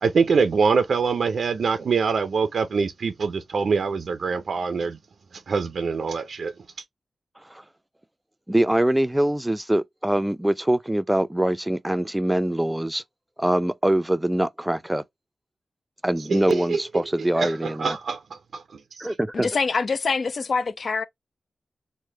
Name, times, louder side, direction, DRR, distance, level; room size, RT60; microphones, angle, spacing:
voice 1, 0.0-5.0 5.3-6.5 16.3-16.8 17.4-18.4, right 5 dB, 75° right, 0.4 m, -24 dB
voice 2, 8.5-13.0 13.4-15.0 16.0-18.0 19.0-19.5, right 1 dB, 10° right, 0.4 m, -23 dB
voice 3, 19.3-21.0, left 4 dB, 60° left, 0.4 m, -25 dB
3.2 x 2.1 x 3.1 m
cardioid pair, 70°, 0 cm